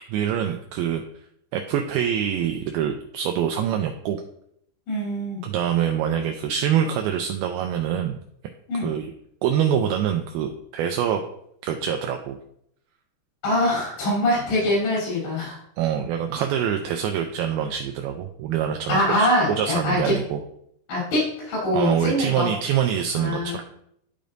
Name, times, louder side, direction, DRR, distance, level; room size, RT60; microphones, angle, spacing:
voice 1, 0.1-1.0 1.5-4.2 5.4-8.2 8.8-9.1 9.4-11.2 11.6-12.4 15.8-19.3 19.6-20.4 21.7-23.6, right 9 dB, 80° right, 4 dB, 2.3 m, -25 dB
voice 2, 4.9-5.4 8.7-8.9 13.4-15.6 18.9-20.2 20.9-22.5 23.1-23.6, left 1 dB, 75° left, -8 dB, 5.5 m, -23 dB
12.0 x 5.1 x 2.6 m, 0.71 s
omnidirectional pair, 4.7 m